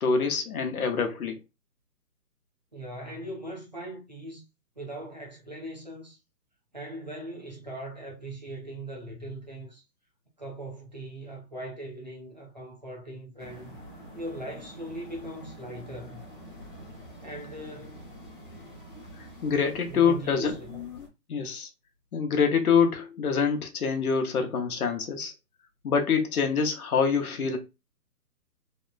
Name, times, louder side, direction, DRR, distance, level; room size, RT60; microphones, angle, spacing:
voice 1, 0.0-1.4 19.4-21.7 22.1-25.3 25.8-27.6, left 6 dB, 60° left, 0.8 m, -26 dB
voice 2, 2.7-4.5 4.8-6.2 6.7-9.8 10.4-13.8 14.1-16.2 17.2-18.2 19.8-20.8, right 1 dB, 30° right, 0.5 m, -40 dB
sound 1, 13.4-21.1, equal, 30° left, 0.8 m, -46 dB
2.9 x 2.0 x 2.3 m
hypercardioid pair, 165°, 49 cm